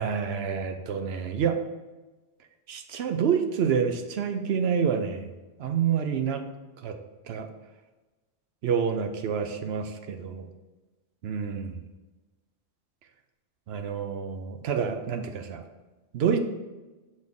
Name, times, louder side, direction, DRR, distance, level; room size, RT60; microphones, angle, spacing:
voice 1, 0.0-1.6 2.7-5.3 5.6-6.4 6.8-7.0 7.3-7.5 8.6-10.5 11.2-11.7 13.7-15.6 16.1-16.4, right 7 dB, 70° right, 6 dB, 0.8 m, -28 dB
6.5 x 4.2 x 3.6 m, 1.2 s
omnidirectional pair, 1.1 m